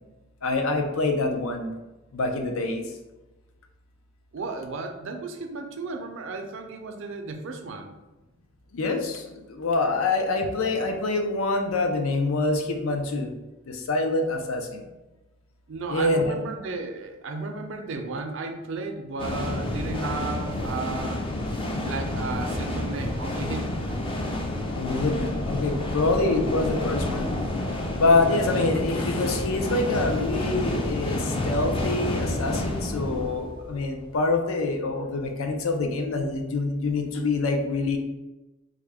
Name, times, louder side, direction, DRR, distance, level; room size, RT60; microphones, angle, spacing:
voice 1, 0.4-1.7 2.1-2.8 8.7-9.2 9.5-13.3 13.7-14.8 15.9-16.3 24.7-27.3 28.0-38.0, left 3 dB, 90° left, 4 dB, 0.5 m, -25 dB
voice 2, 4.3-7.9 15.7-21.2 21.8-23.8, right 3 dB, 65° right, 5 dB, 0.4 m, -34 dB
sound 1, 19.2-34.0, left 1 dB, 25° left, 0.4 m, -29 dB
3.6 x 2.1 x 3.4 m, 1.1 s
head